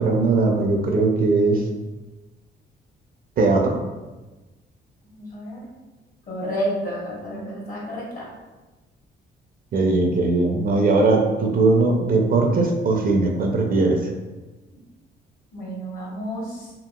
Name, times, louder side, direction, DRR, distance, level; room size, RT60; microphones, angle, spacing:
voice 1, 0.0-1.6 3.4-3.8 9.7-14.1, right 3 dB, 45° right, 2 dB, 0.4 m, -19 dB
voice 2, 5.1-5.6 6.3-8.3 15.5-16.7, equal, 45° left, -5 dB, 1.3 m, -30 dB
2.9 x 2.5 x 2.2 m, 1.2 s
cardioid pair, 90°, 20 cm